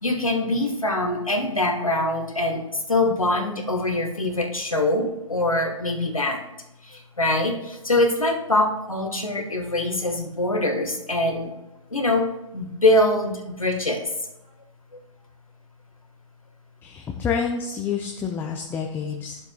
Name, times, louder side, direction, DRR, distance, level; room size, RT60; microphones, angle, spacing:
voice 1, 0.0-6.4 6.8-11.5 11.9-12.3 12.5-14.1, left 2 dB, 90° left, 3 dB, 1.6 m, -23 dB
voice 2, 16.8-19.4, left 6 dB, 10° left, 2 dB, 0.6 m, -28 dB
11.5 x 7.0 x 2.3 m, 0.95 s
figure-of-eight pair, 120°, 17 cm